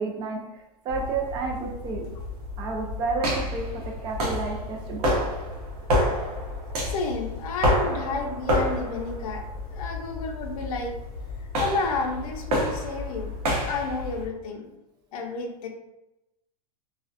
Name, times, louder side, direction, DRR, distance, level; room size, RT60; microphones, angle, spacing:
voice 1, 0.0-2.0 2.6-5.3, right 4 dB, 20° right, 1 dB, 0.3 m, -31 dB
sound 1, 0.9-14.3, left 1 dB, 85° right, 0.9 m, -29 dB
voice 2, 6.8-9.4 9.7-10.9 11.6-13.3 13.6-14.7 15.1-15.7, left 3 dB, 70° left, 2 dB, 0.5 m, -31 dB
2.4 x 2.1 x 2.5 m, 0.92 s
supercardioid pair, 155°, 19 cm